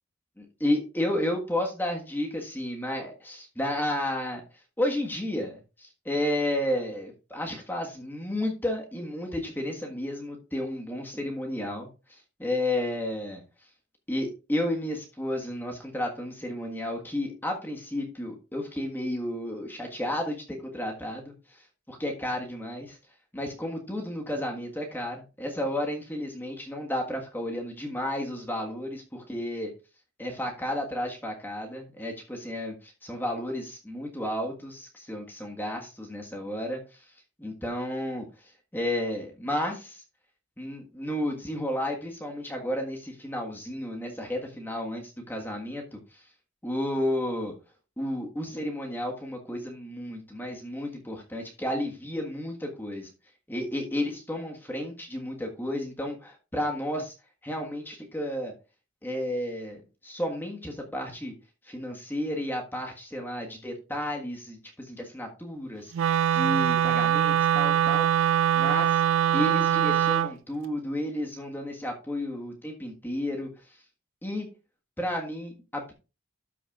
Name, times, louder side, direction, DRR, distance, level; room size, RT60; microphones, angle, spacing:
voice 1, 0.4-2.3 2.5-4.4 4.8-13.4 14.1-23.0 23.3-29.7 30.2-37.1 37.4-40.0 40.6-46.3 46.6-47.5 48.0-53.1 53.5-57.1 57.4-58.5 59.0-61.3 61.6-69.0 69.3-73.8 74.2-74.5 75.0-75.9, left 1 dB, 10° left, 1 dB, 1.5 m, -32 dB
Wind instrument woodwind instrument, 65.9-70.3, right 10 dB, 65° right, 0.3 m, -23 dB
12.5 x 6.1 x 2.4 m, 0.30 s
head